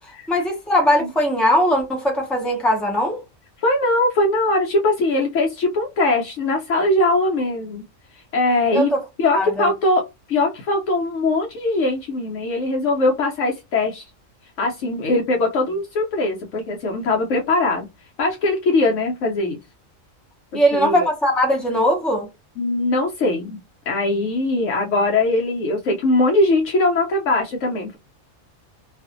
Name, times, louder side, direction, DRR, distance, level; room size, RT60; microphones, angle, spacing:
voice 1, 0.3-3.2 8.7-9.0 9.3-9.7 20.5-22.3, equal, ahead, 0.6 m, -19 dB
voice 2, 3.6-7.8 8.1-8.9 9.2-10.0 10.3-14.0 14.6-17.9 18.2-19.6 20.5-21.1 22.6-23.6 23.9-28.0, left 2 dB, 75° left, 0.9 m, -21 dB
2.5 x 2.4 x 2.4 m
omnidirectional pair, 1.4 m